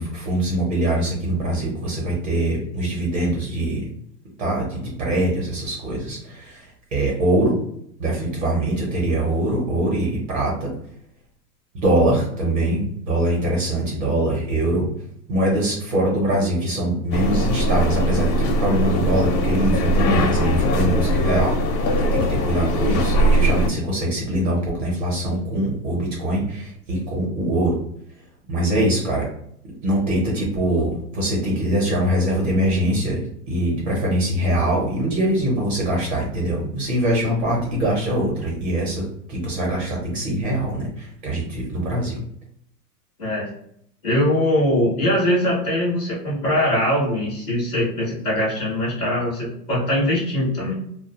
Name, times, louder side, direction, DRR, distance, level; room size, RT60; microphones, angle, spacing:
voice 1, 0.0-3.9 4.4-6.7 6.9-7.6 8.0-10.7 11.8-14.9 15.3-27.8 28.5-29.3 29.8-33.2 33.5-42.2, right 1 dB, 40° right, -2 dB, 0.8 m, -23 dB
sound 1, 17.1-23.7, equal, 90° left, 0.7 m, -20 dB
voice 2, 44.0-50.7, left 1 dB, 5° left, -11 dB, 0.4 m, -21 dB
2.4 x 2.1 x 2.9 m, 0.73 s
supercardioid pair, 165°, 49 cm